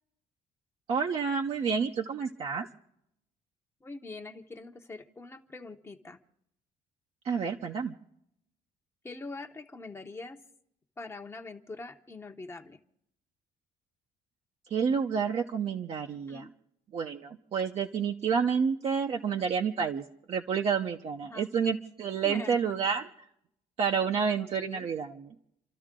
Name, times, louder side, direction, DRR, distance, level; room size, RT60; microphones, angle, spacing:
voice 1, 0.9-2.7 7.2-7.9 14.7-16.5 16.9-23.1 23.8-25.3, right 6 dB, 45° right, 2 dB, 0.9 m, -29 dB
voice 2, 3.8-6.2 9.0-10.4 11.0-12.8 16.3-16.5 21.3-21.5 22.2-22.6 24.4-24.9, left 3 dB, 20° left, 5 dB, 1.0 m, -43 dB
29.5 x 12.5 x 3.8 m, 0.76 s
cardioid pair, 130°, 14 cm